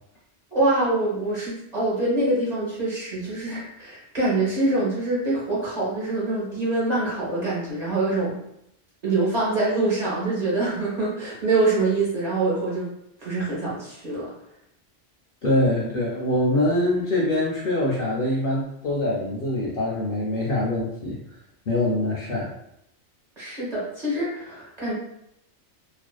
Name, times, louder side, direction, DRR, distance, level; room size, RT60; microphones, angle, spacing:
voice 1, 0.5-8.4 9.0-12.9 13.2-14.3 23.4-24.9, right 2 dB, 40° right, -7 dB, 0.9 m, -25 dB
voice 2, 15.4-21.2 21.7-22.5, left 1 dB, 60° left, -4 dB, 0.6 m, -24 dB
2.5 x 2.3 x 2.3 m, 0.76 s
omnidirectional pair, 1.3 m